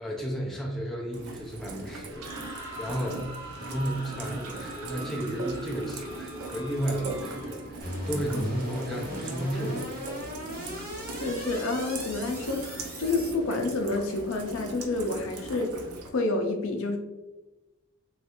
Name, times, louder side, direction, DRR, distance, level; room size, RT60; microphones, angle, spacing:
voice 1, 0.0-10.0, equal, ahead, -3 dB, 0.4 m, -33 dB
Rain, 1.1-16.1, right 2 dB, 85° right, 0.5 m, -40 dB
sound 1, 2.0-7.8, right 1 dB, 70° right, 0.9 m, -43 dB
sound 2, 7.8-13.3, equal, 40° right, 1.0 m, -37 dB
voice 2, 11.2-15.7 16.1-17.0, left 2 dB, 65° left, 4 dB, 0.4 m, -29 dB
3.2 x 2.3 x 2.8 m, 1.1 s
head